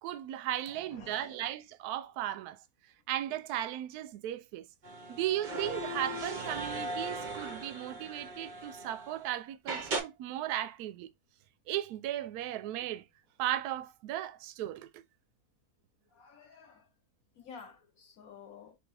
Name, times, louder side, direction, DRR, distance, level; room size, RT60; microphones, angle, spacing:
voice 1, 0.0-2.6 3.1-4.7 5.1-11.1 11.7-13.0 13.4-15.0, right 12 dB, 75° right, 1.0 m, -36 dB
voice 2, 0.7-1.3 16.1-16.8 17.4-18.8, left 6 dB, 65° left, 1.2 m, -51 dB
sound 1, 4.8-9.2 9.7-10.0, right 2 dB, 40° right, 0.7 m, -38 dB
3.4 x 3.3 x 3.4 m
omnidirectional pair, 1.7 m